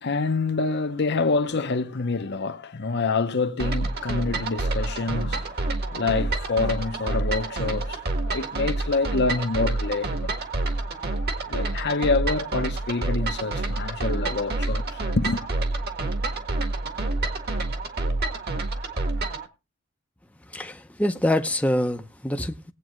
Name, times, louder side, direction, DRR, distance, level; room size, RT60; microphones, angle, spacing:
voice 1, 0.0-10.4 10.7-15.5, left 3 dB, 50° left, 0.8 m, -27 dB
sound 1, 3.6-19.5, right 2 dB, 50° right, 1.6 m, -28 dB
voice 2, 20.5-22.7, left 1 dB, 5° left, 0.6 m, -25 dB
19.0 x 8.4 x 3.1 m
head